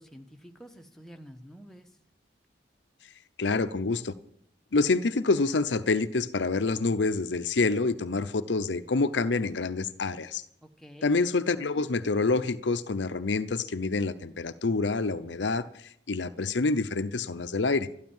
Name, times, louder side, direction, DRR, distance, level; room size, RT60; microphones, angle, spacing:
voice 1, 0.0-1.9 10.6-11.1, equal, ahead, 4 dB, 1.1 m, -49 dB
voice 2, 3.4-4.1 4.7-10.4 11.0-17.9, left 3 dB, 75° left, 12 dB, 0.7 m, -27 dB
13.0 x 12.0 x 7.2 m, 0.70 s
head